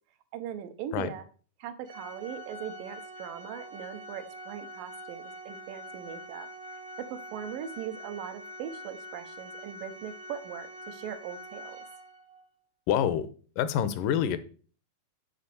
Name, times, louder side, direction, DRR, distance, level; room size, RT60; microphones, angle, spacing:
voice 1, 0.3-1.3 1.6-6.5 7.0-11.8, right 9 dB, 80° right, 8 dB, 2.6 m, -40 dB
Organ, 1.8-12.4, equal, 40° right, 0.8 m, -45 dB
voice 2, 12.9-13.3 13.6-14.4, left 9 dB, 80° left, 14 dB, 2.3 m, -26 dB
8.0 x 5.1 x 6.7 m, 0.41 s
omnidirectional pair, 3.9 m